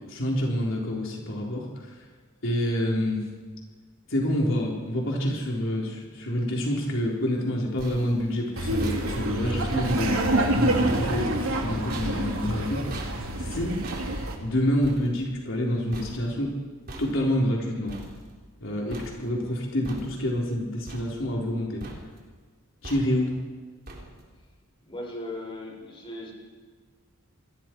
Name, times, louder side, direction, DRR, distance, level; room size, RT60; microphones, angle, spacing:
voice 1, 0.1-1.9 2.4-3.2 4.1-10.2 10.5-13.8 14.4-16.5 17.0-18.0 18.6-21.8 22.8-23.4, left 1 dB, 65° left, -2 dB, 4.0 m, -27 dB
sound 1, 7.4-18.6 18.9-19.5 19.8-20.5 20.9-21.5 21.8-22.3 22.8-23.4 23.9-24.4, right 1 dB, 45° right, 4.1 m, -44 dB
Laughter, 8.6-14.3, right 1 dB, 80° right, 3.2 m, -27 dB
voice 2, 24.9-26.3, left 1 dB, 25° left, -1 dB, 6.0 m, -37 dB
28.5 x 21.5 x 4.7 m, 1.5 s
head